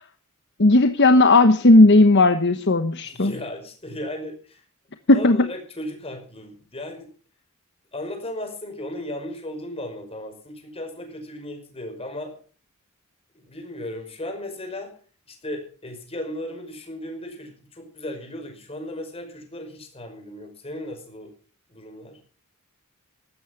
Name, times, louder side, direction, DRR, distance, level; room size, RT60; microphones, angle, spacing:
voice 1, 0.6-3.3 5.1-5.5, left 2 dB, 55° left, 8 dB, 1.1 m, -15 dB
voice 2, 3.0-4.6 5.1-7.1 7.9-12.3 13.3-15.0 15.3-21.3 21.7-22.2, left 1 dB, 25° left, 4 dB, 5.4 m, -36 dB
15.5 x 12.5 x 5.8 m, 0.41 s
head